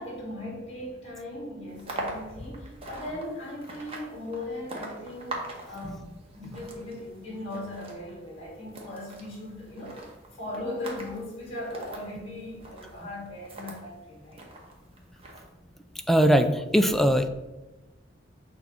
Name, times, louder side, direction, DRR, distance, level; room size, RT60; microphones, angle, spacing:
voice 1, 0.0-6.1 6.3-14.5, left 1 dB, 35° left, -3 dB, 1.8 m, -38 dB
sound 1, 1.7-13.8 14.3-15.4, right 2 dB, 30° right, 1.1 m, -42 dB
voice 2, 16.1-17.3, equal, ahead, 8 dB, 0.3 m, -20 dB
6.5 x 2.7 x 5.6 m, 1.0 s
head